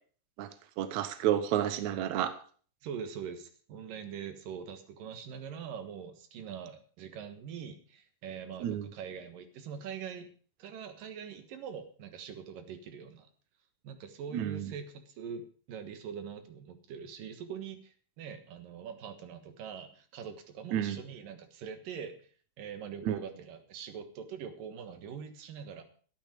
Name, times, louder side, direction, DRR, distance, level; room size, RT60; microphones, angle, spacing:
voice 1, 0.8-2.4 8.6-8.9 14.3-14.7 20.7-21.0 23.0-23.2, right 11 dB, 70° right, 10 dB, 2.2 m, -30 dB
voice 2, 2.8-10.3 10.6-13.3 13.8-22.2 22.6-25.8, right 7 dB, 85° right, 8 dB, 3.2 m, -43 dB
12.0 x 12.0 x 5.1 m, 0.42 s
omnidirectional pair, 3.8 m